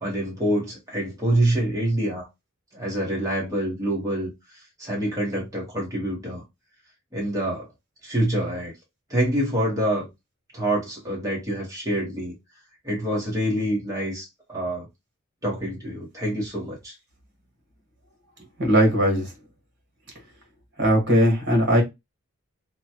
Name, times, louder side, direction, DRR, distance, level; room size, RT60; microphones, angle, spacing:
voice 1, 0.0-2.3 2.7-4.3 4.8-6.4 7.1-7.7 8.0-8.7 9.1-10.1 10.5-12.3 12.8-14.9 15.4-16.9, right 1 dB, 15° right, 1.1 m, -26 dB
voice 2, 18.6-19.3 20.8-21.8, equal, 55° right, 1.4 m, -19 dB
3.0 x 2.2 x 2.8 m
head